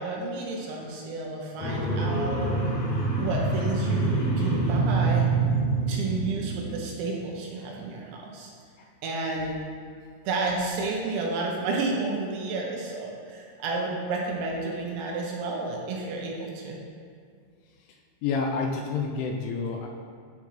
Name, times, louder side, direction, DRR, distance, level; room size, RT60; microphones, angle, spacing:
voice 1, 0.0-2.5 3.2-5.3 5.9-8.5 9.0-9.6 10.3-16.8, right 3 dB, 75° right, -1 dB, 2.9 m, -31 dB
sound 1, 1.6-6.9, right 3 dB, 50° left, 2.3 m, -26 dB
voice 2, 18.2-19.9, left 4 dB, 80° left, 1 dB, 2.9 m, -28 dB
13.0 x 5.7 x 3.2 m, 2.2 s
omnidirectional pair, 5.8 m